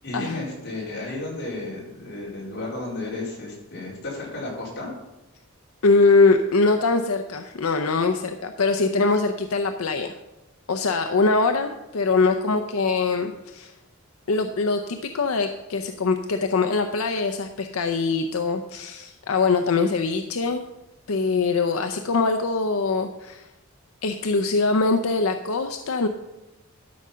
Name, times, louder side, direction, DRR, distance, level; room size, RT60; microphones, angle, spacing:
voice 1, 0.0-4.9, left 2 dB, 50° left, -4 dB, 4.3 m, -33 dB
voice 2, 5.8-10.2 10.7-13.7 14.3-20.6 21.1-23.5 24.0-26.1, left 3 dB, 85° left, 6 dB, 0.6 m, -22 dB
12.5 x 6.3 x 5.6 m, 0.98 s
head